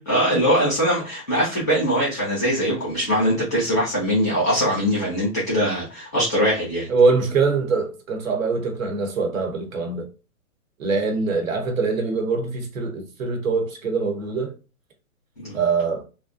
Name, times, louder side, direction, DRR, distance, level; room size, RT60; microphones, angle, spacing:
voice 1, 0.0-6.9 15.4-15.6, equal, 10° left, 0.4 m, -22 dB
voice 2, 6.9-10.1 10.8-14.5 15.5-16.0, right 4 dB, 60° right, 1.0 m, -23 dB
2.5 x 2.1 x 2.5 m
hypercardioid pair, 145°, 45 cm